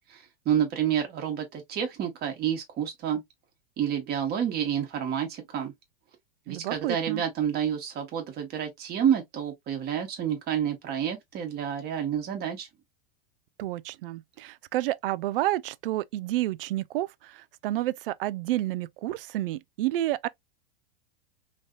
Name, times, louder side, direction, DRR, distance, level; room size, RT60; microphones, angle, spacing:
voice 1, 0.0-3.2 3.8-5.7 6.5-12.7, right 9 dB, 30° right, 1.3 m, -29 dB
voice 2, 6.5-7.2 13.6-20.3, right 15 dB, 70° right, 0.4 m, -30 dB
3.2 x 2.8 x 2.4 m
hypercardioid pair, 120°, 30 cm